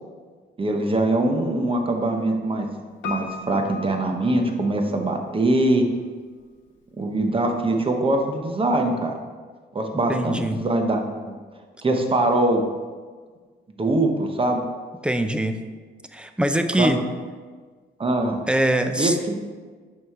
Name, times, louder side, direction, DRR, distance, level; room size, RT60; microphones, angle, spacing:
voice 1, 0.6-2.7 3.0-5.9 7.0-9.2 9.7-11.3 11.8-12.6 13.8-14.6 16.8-17.0 18.0-18.4 19.0-19.4, right 2 dB, 25° right, 4 dB, 0.9 m, -22 dB
Piano, 3.0-5.1 5.3-5.4, left 6 dB, 70° left, 1.0 m, -36 dB
voice 2, 10.1-10.6 15.0-15.6 16.1-17.0 18.5-19.2, right 1 dB, 5° right, 8 dB, 0.5 m, -23 dB
6.1 x 4.8 x 4.6 m, 1.5 s
cardioid pair, 90°, 20 cm